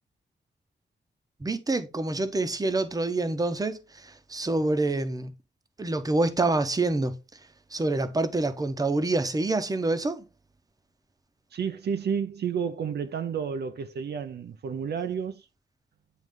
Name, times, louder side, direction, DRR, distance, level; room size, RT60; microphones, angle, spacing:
voice 1, 1.4-5.3 5.8-7.1 7.7-10.3, right 2 dB, 20° right, 0.7 m, -27 dB
voice 2, 11.5-15.5, right 7 dB, 65° right, 0.5 m, -31 dB
9.1 x 3.1 x 3.6 m
wide cardioid pair, 125°, 19 cm